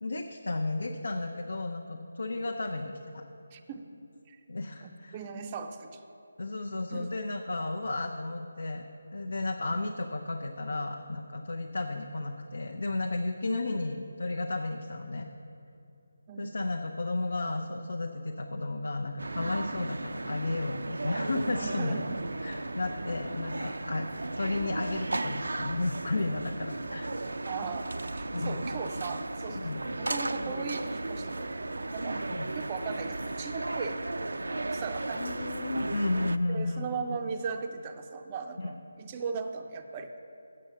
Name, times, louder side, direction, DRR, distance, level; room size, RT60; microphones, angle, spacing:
voice 1, 0.0-3.3 4.5-5.2 6.4-15.3 16.4-22.0 22.4-24.1 24.4-27.1 28.3-28.6 29.6-29.8 32.3-32.5 35.2-36.9 38.6-38.7, left 2 dB, 75° left, 3 dB, 0.6 m, -33 dB
voice 2, 3.5-3.9 4.3-4.4 4.8-6.0 6.9-7.1 16.3-16.5 21.6-22.1 27.5-32.2 32.5-34.0 34.3-35.5 36.5-38.7 39.0-40.1, right 5 dB, 20° right, 5 dB, 0.4 m, -38 dB
sound 1, 19.2-36.4, right 2 dB, 80° right, 0.4 m, -35 dB
7.7 x 7.4 x 6.8 m, 2.8 s
figure-of-eight pair, 165°, 0 cm